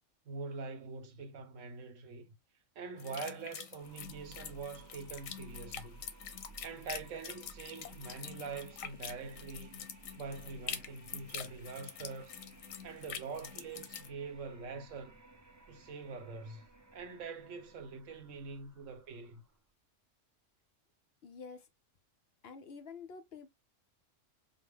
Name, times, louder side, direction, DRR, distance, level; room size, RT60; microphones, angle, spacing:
voice 1, 0.3-2.3 2.8-6.0 6.6-9.8 10.2-12.4 12.8-15.1 15.7-16.7 16.9-19.4, right 4 dB, 75° right, 1.2 m, -44 dB
sound 1, 3.0-14.1, left 8 dB, 90° left, 1.1 m, -46 dB
sound 2, 3.8-19.7, right 3 dB, 25° right, 0.4 m, -57 dB
voice 2, 21.2-21.7 22.4-23.5, left 5 dB, 60° left, 0.8 m, -48 dB
5.0 x 2.1 x 3.5 m
omnidirectional pair, 1.3 m